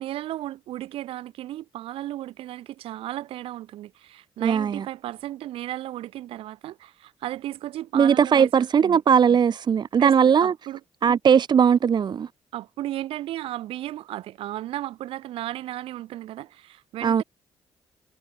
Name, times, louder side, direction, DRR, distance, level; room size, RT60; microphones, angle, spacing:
voice 1, 0.0-9.0 10.0-10.8 12.5-17.2, right 14 dB, 80° right, 5.8 m, -35 dB
voice 2, 4.4-4.8 7.9-10.5 11.0-12.3 17.0-17.2, right 7 dB, 50° right, 0.7 m, -19 dB
supercardioid pair, 55°, 9 cm